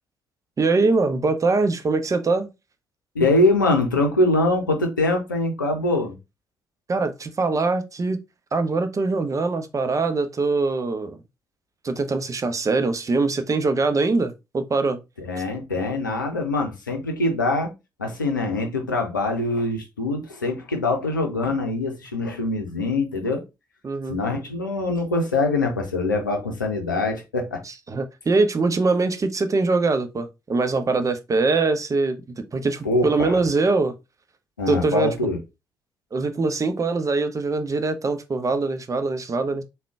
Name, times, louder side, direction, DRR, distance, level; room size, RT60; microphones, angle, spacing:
voice 1, 0.6-2.5 6.9-8.2 8.5-11.2 11.8-15.0 23.8-24.2 27.6-34.0 34.7-35.1 36.1-39.6, right 3 dB, 30° right, 0.6 m, -23 dB
voice 2, 3.1-6.1 15.2-17.7 18.0-23.4 24.1-27.6 32.8-33.4 34.6-35.4, left 2 dB, 90° left, 0.5 m, -23 dB
3.6 x 2.2 x 3.4 m
figure-of-eight pair, 40°, 10 cm